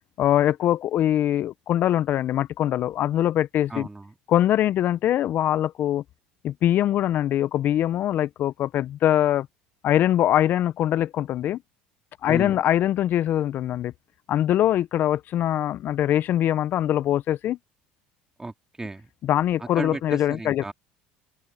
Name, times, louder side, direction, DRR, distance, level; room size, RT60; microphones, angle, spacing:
voice 1, 0.2-3.9 4.3-6.0 6.4-9.5 9.8-11.6 12.2-13.9 14.3-17.6 19.2-20.7, left 12 dB, 55° left, 0.7 m, -23 dB
voice 2, 3.7-4.1 12.3-12.6 18.4-19.1 19.6-20.7, right 2 dB, 15° right, 2.6 m, -35 dB
open air
supercardioid pair, 85°, 4 cm